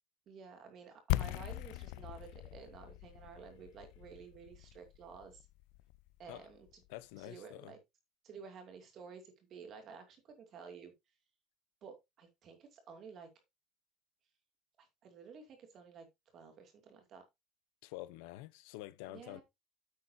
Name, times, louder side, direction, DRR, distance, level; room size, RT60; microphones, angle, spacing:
voice 1, 0.3-5.5 6.2-6.7 7.2-7.8 8.2-10.9 11.8-13.3 14.8-16.1 16.3-17.2 19.1-19.4, right 6 dB, 35° right, 2.4 m, -52 dB
sound 1, 1.1-6.8, left 17 dB, 70° left, 0.4 m, -40 dB
voice 2, 6.9-7.7 17.8-19.4, left 16 dB, 85° left, 0.9 m, -47 dB
9.4 x 8.3 x 2.7 m
cardioid pair, 175°, 0 cm